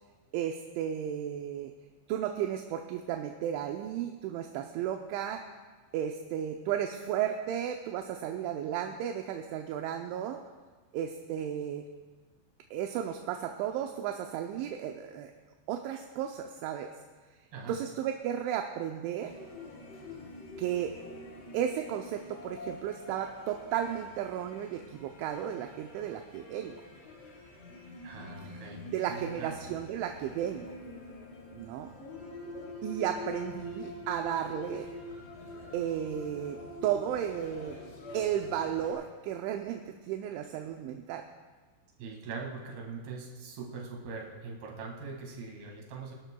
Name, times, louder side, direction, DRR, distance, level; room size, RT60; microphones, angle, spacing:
voice 1, 0.3-1.7 2.1-5.4 5.9-10.4 10.9-11.9 12.7-15.3 15.7-16.9 17.7-19.3 20.6-20.9 21.5-26.8 28.9-30.7 31.5-31.9 32.8-34.9 35.7-37.8 38.1-41.2, right 10 dB, 80° right, 4 dB, 2.9 m, -34 dB
sound 1, 19.2-38.9, left 2 dB, 65° left, 4.6 m, -46 dB
voice 2, 28.0-29.6 42.0-46.1, right 4 dB, 60° right, -1 dB, 3.5 m, -42 dB
25.0 x 12.0 x 2.3 m, 1.4 s
omnidirectional pair, 5.7 m